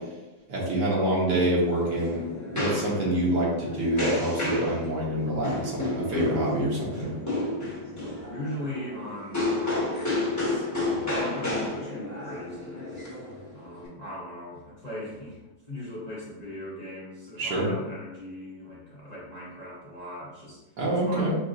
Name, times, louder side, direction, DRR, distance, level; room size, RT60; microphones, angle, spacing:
voice 1, 0.5-7.1 17.4-17.7 20.8-21.3, right 1 dB, 80° right, -5 dB, 1.7 m, -26 dB
sound 1, 1.5-13.9, left 2 dB, 10° left, 1.2 m, -31 dB
voice 2, 7.8-12.9 13.5-15.4 15.7-21.4, left 1 dB, 30° left, -8 dB, 0.9 m, -39 dB
5.9 x 2.5 x 2.5 m, 1.1 s
omnidirectional pair, 1.8 m